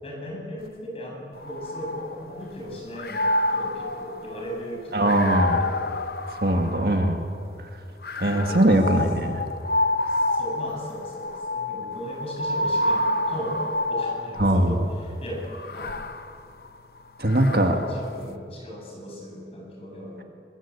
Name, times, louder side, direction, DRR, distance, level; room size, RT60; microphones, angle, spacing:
voice 1, 0.0-5.9 8.3-8.7 10.1-13.6 13.9-16.0 17.7-20.3, equal, 35° left, -1 dB, 7.2 m, -37 dB
sound 1, 1.4-2.6 2.9-7.3 8.0-14.7 15.5-18.1, left 2 dB, 60° left, 0.9 m, -29 dB
voice 2, 4.9-5.6 6.4-7.2 8.2-9.4 14.4-14.8 17.2-17.8, right 1 dB, 60° right, 4 dB, 2.0 m, -21 dB
23.0 x 22.0 x 8.6 m, 2.4 s
head